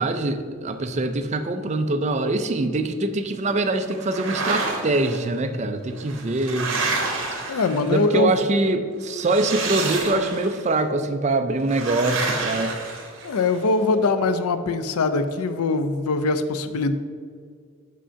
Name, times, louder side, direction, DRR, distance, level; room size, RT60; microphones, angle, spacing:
voice 1, 0.0-6.7 7.9-12.7, right 2 dB, 30° right, 8 dB, 0.4 m, -24 dB
sound 1, 3.9-5.2 6.0-8.1 9.2-10.6 11.7-13.6, right 3 dB, 60° right, 1.3 m, -29 dB
voice 2, 7.5-8.4 13.2-16.9, left 3 dB, 90° left, 10 dB, 0.5 m, -22 dB
5.6 x 5.1 x 5.6 m, 2.1 s
head